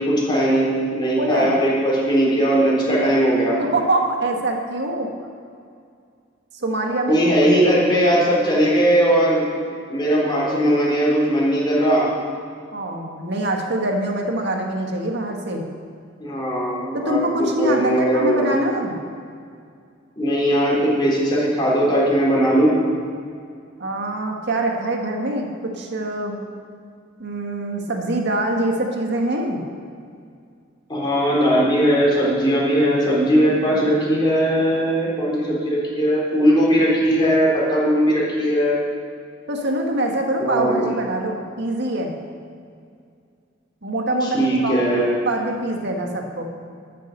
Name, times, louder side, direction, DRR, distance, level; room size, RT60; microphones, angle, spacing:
voice 1, 0.0-3.6 7.1-9.5 9.9-12.1 16.2-18.4 20.2-22.7 30.9-38.8 40.4-40.9 44.2-45.1, equal, 25° left, -6 dB, 4.0 m, -19 dB
voice 2, 1.2-1.6 3.6-5.1 6.5-7.2 7.4-7.8 12.7-15.6 16.9-18.9 23.8-26.4 27.2-29.6 39.5-42.1 43.8-46.4, right 1 dB, 60° right, 2 dB, 1.8 m, -24 dB
14.0 x 7.6 x 6.7 m, 2.3 s
head